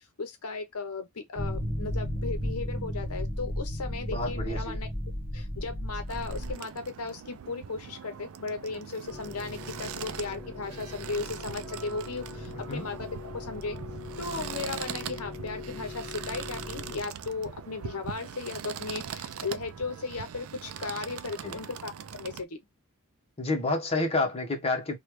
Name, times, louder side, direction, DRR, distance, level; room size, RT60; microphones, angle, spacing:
voice 1, 0.2-4.9 5.3-13.1 13.3-13.8 14.2-22.6, left 4 dB, 75° left, 0.8 m, -36 dB
sound 1, 1.4-6.5, equal, 25° right, 1.1 m, -33 dB
voice 2, 4.1-4.8 12.5-12.8 21.4-21.6 23.4-25.0, left 2 dB, 25° left, 1.0 m, -29 dB
sound 2, 6.1-22.4, right 8 dB, 65° right, 0.4 m, -41 dB
sound 3, 9.1-17.0, left 4 dB, ahead, 1.4 m, -43 dB
3.2 x 2.3 x 3.1 m
head